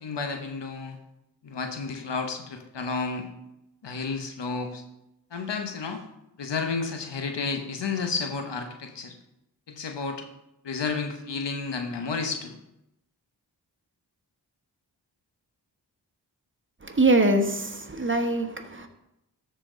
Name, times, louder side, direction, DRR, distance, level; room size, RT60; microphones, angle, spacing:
voice 1, 0.0-1.0 1.4-3.3 3.8-4.8 5.3-6.0 6.4-9.1 9.7-10.3 10.6-12.6, left 4 dB, 75° left, 5 dB, 1.1 m, -31 dB
voice 2, 16.8-18.9, right 2 dB, 25° right, 5 dB, 1.3 m, -23 dB
13.0 x 4.4 x 3.9 m, 0.86 s
cardioid pair, 40°, 43 cm